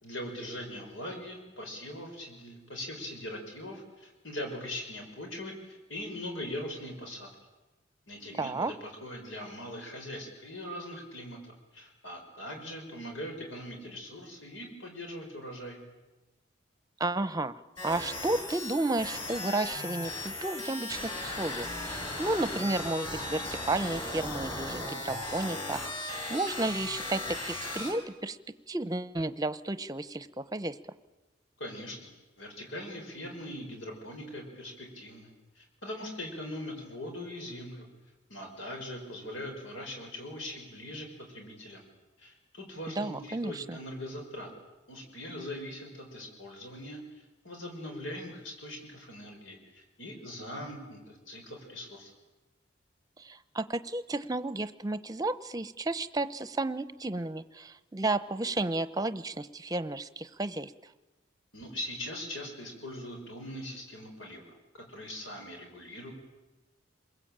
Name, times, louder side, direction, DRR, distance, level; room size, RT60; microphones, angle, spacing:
voice 1, 0.0-7.3 8.1-15.8 31.6-32.0 32.4-35.3 35.6-37.9 38.3-41.9 42.2-44.5 44.9-52.1 61.5-66.1, left 1 dB, 85° left, 3 dB, 5.6 m, -41 dB
voice 2, 8.4-8.7 17.0-17.5 17.8-28.4 28.7-30.8 42.9-43.8 53.2-60.7, right 2 dB, 20° right, 13 dB, 0.8 m, -32 dB
sound 1, 17.8-27.9, left 2 dB, 25° left, 7.2 m, -37 dB
28.0 x 21.5 x 8.9 m, 1.1 s
head